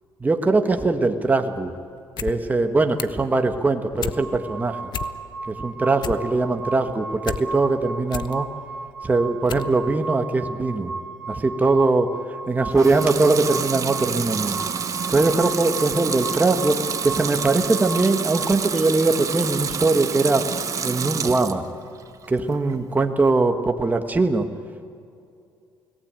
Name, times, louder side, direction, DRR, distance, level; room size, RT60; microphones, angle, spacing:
voice 1, 0.2-1.7 2.2-4.8 5.5-8.5 9.0-10.9 11.3-12.1 12.5-14.6 15.1-20.4 20.8-21.6 22.3-24.5, right 3 dB, 20° right, 6 dB, 1.6 m, -21 dB
sound 1, 2.0-2.4 2.6-3.3 3.6-4.2 4.6-4.7 4.9-5.5 5.8-7.4 7.8-8.3 8.9-9.0 9.5-9.7 10.0-10.1, left 8 dB, 55° left, 1.0 m, -32 dB
sound 2, 4.1-18.6, right 3 dB, ahead, 4.7 m, -35 dB
Water tap faucet / Sink (filling or washing) / Liquid, 12.7-21.7 22.1-22.8, right 6 dB, 35° right, 1.2 m, -28 dB
29.5 x 18.5 x 9.0 m, 2.5 s
cardioid pair, 110°, 9 cm